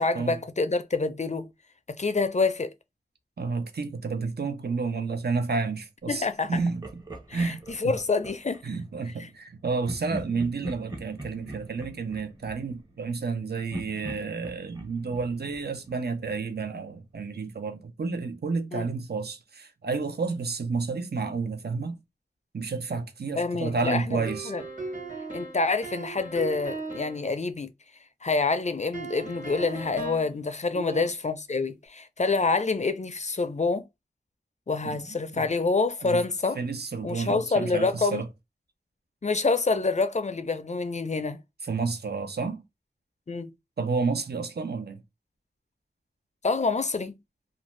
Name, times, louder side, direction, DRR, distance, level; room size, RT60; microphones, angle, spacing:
voice 1, 0.0-1.5 2.0-2.7 6.1-6.6 7.3-8.6 18.7-18.9 23.4-24.2 24.5-24.6 25.3-27.7 28.2-33.8 34.7-36.6 37.0-38.2 39.2-41.4 43.3-43.5 46.4-47.2, left 3 dB, 45° left, 0.4 m, -27 dB
voice 2, 3.4-7.0 7.3-8.0 8.6-22.0 22.5-24.5 30.7-31.1 34.8-35.0 35.3-35.5 36.0-36.2 36.5-38.3 41.6-42.6 43.8-45.0, right 4 dB, 70° right, 0.5 m, -30 dB
Laughter, 6.5-8.6 9.8-13.3 13.7-16.5, right 1 dB, 25° right, 0.8 m, -41 dB
sound 1, 24.3-27.3 28.9-30.4, right 3 dB, 50° right, 1.4 m, -37 dB
2.5 x 2.1 x 3.0 m
wide cardioid pair, 45°, 17 cm